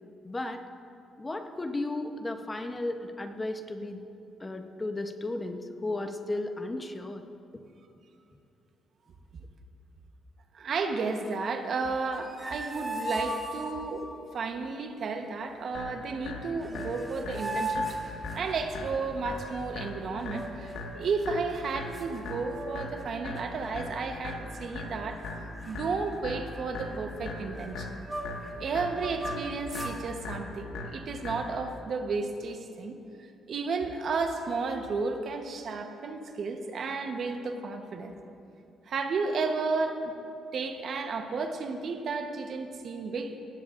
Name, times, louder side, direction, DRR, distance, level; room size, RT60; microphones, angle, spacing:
voice 1, 0.2-0.6 1.2-4.0 4.4-7.2, left 2 dB, 20° left, 6 dB, 0.8 m, -34 dB
voice 2, 10.5-25.2 25.7-27.9 28.6-33.0 33.5-38.1 38.9-40.1 40.5-43.3, right 4 dB, 60° right, 5 dB, 1.0 m, -33 dB
sound 1, 12.1-14.1 16.3-16.4 16.6-18.8 20.2-21.0 21.6-21.7 21.9-23.0 23.4-23.7 24.3-24.9 25.2-25.4 25.6-28.5 28.9-30.0, right 1 dB, 15° right, 1.8 m, -38 dB
sound 2, 15.7-31.7, left 3 dB, 90° left, 1.6 m, -40 dB
17.5 x 14.5 x 2.5 m, 2.7 s
cardioid pair, 90°, 0 cm